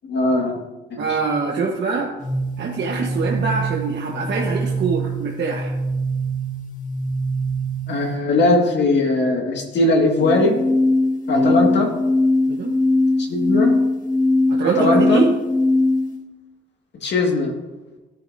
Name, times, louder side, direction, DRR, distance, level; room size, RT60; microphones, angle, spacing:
voice 1, 0.0-0.6 0.9-1.0 7.9-10.6 11.3-11.9 13.3-13.7 14.8-15.2 17.0-17.5, left 2 dB, 60° left, 1 dB, 2.1 m, -19 dB
voice 2, 1.0-2.1 2.6-5.7 11.3-11.5 12.5-12.7 14.5-15.3, right 5 dB, 65° right, -2 dB, 1.4 m, -24 dB
sound 1, 2.2-8.2 10.2-16.2, left 1 dB, 40° left, 1.6 m, -21 dB
14.0 x 10.0 x 2.8 m, 1.1 s
cardioid pair, 90°, 20 cm